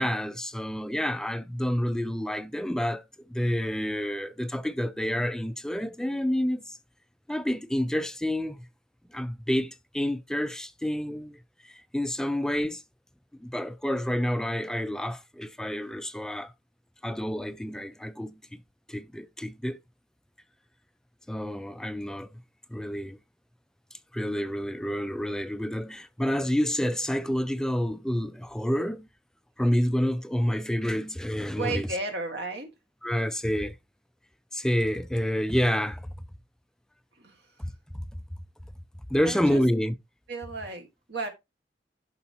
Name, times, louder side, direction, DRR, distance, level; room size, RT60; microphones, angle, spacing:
voice 1, 0.0-6.8 7.3-8.6 9.1-12.8 13.4-16.5 17.0-18.6 18.9-19.8 21.3-22.3 22.7-23.2 23.9-29.1 29.6-31.9 33.0-33.8 34.5-36.1 37.9-38.0 39.1-39.9, equal, 5° left, 0.3 m, -29 dB
voice 2, 31.5-32.7 37.2-37.4 39.2-39.6 40.3-41.3, right 3 dB, 70° right, 1.8 m, -33 dB
11.0 x 5.0 x 2.9 m
head